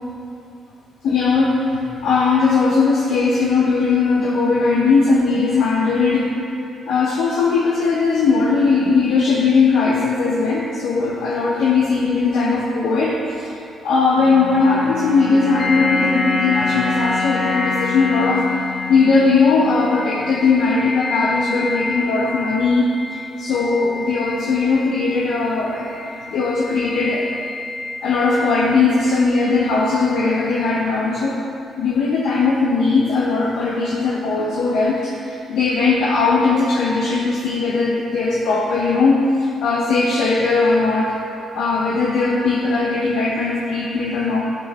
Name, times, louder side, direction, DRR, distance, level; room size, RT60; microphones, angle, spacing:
voice 1, 1.0-6.3 6.9-22.9 23.1-26.0 26.3-27.3 28.0-31.4 31.8-41.2 41.5-44.4, left 4 dB, 75° left, -4 dB, 0.8 m, -18 dB
sound 1, 14.2-20.6, left 3 dB, 15° left, 1.5 m, -27 dB
sound 2, 15.6-30.8, left 3 dB, 45° left, 0.4 m, -30 dB
10.5 x 4.4 x 3.4 m, 2.7 s
cardioid pair, 90°, 0 cm